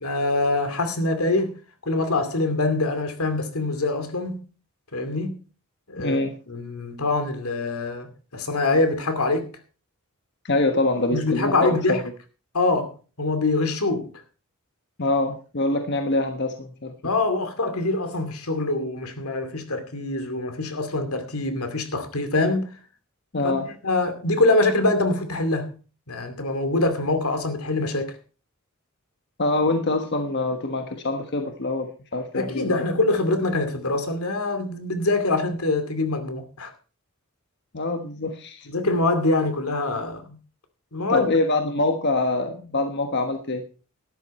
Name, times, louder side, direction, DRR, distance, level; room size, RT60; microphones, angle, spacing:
voice 1, 0.0-1.5 1.8-4.5 4.9-5.4 5.9-6.2 6.5-9.5 11.1-12.0 12.5-14.1 17.0-22.7 23.4-23.5 23.8-25.7 26.1-28.1 32.3-36.7 38.7-40.4 40.9-41.3, left 2 dB, 90° left, 2.5 m, -24 dB
voice 2, 6.0-6.4 10.4-12.0 15.0-16.9 23.3-23.7 29.4-32.8 37.7-38.7 41.1-43.6, left 2 dB, 55° left, 1.3 m, -25 dB
12.5 x 11.0 x 4.3 m
head